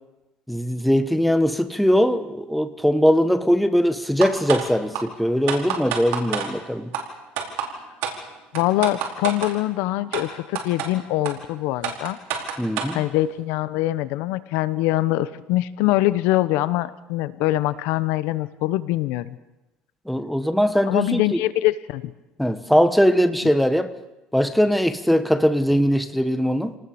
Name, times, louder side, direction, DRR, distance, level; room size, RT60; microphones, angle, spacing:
voice 1, 0.5-6.9 12.6-13.0 20.1-21.4 22.4-23.9 24.3-26.8, equal, ahead, 1.1 m, -20 dB
sound 1, 4.2-4.7 4.9-5.0 5.5-6.5 6.9-7.0 7.4-7.7 8.0-8.2 8.6-9.5 10.1-10.2 10.6-10.9 11.3-11.4 11.8-12.9, right 9 dB, 80° right, 4.7 m, -27 dB
voice 2, 8.5-12.2 12.9-19.4 20.9-22.1, left 16 dB, 85° left, 1.0 m, -23 dB
28.5 x 19.0 x 7.1 m
cardioid pair, 150°, 4 cm